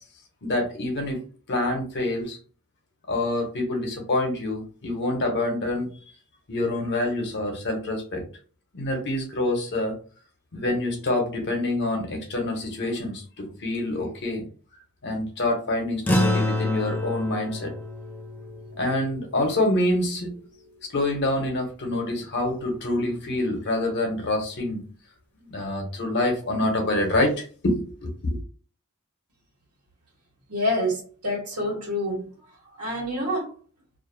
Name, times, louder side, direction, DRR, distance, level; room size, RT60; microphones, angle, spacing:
voice 1, 0.4-1.2 1.5-2.4 3.1-5.9 6.5-8.2 8.7-10.0 10.5-14.4 15.0-17.7 18.8-20.3 20.9-24.8 25.4-28.4, left 1 dB, 50° left, 0.8 m, -26 dB
sound 1, 16.1-20.7, left 1 dB, 10° left, 0.3 m, -28 dB
voice 2, 30.5-32.3 32.8-33.5, left 1 dB, 85° right, 1.2 m, -27 dB
2.5 x 2.2 x 2.6 m
head